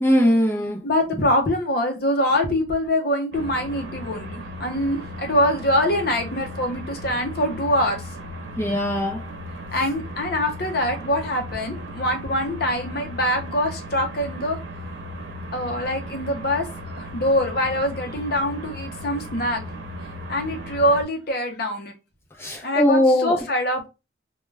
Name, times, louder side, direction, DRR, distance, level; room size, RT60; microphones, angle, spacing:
voice 1, 0.0-0.9 8.6-9.2 22.4-23.4, left 1 dB, 15° left, 0.5 m, -20 dB
voice 2, 0.8-8.0 9.7-14.6 15.5-16.7 16.9-19.6 20.3-21.9 22.6-23.9, left 1 dB, 55° left, 0.6 m, -24 dB
sound 1, 3.3-21.0, equal, 80° right, 0.7 m, -36 dB
2.3 x 2.2 x 3.2 m
head